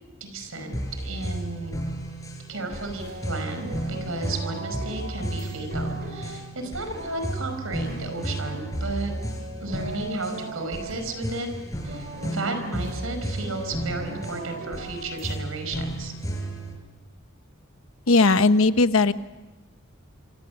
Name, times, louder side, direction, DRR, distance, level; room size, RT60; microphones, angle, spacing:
voice 1, 0.2-1.8 2.5-9.1 9.6-11.5 11.8-16.1, right 2 dB, 85° right, 7 dB, 4.8 m, -33 dB
sound 1, 0.7-16.7, right 1 dB, 15° left, 5.4 m, -33 dB
sound 2, 2.5-15.4, right 2 dB, 50° right, 3.6 m, -40 dB
voice 2, 18.1-19.1, left 3 dB, 80° left, 11 dB, 1.0 m, -18 dB
26.5 x 26.0 x 7.0 m, 1.1 s
head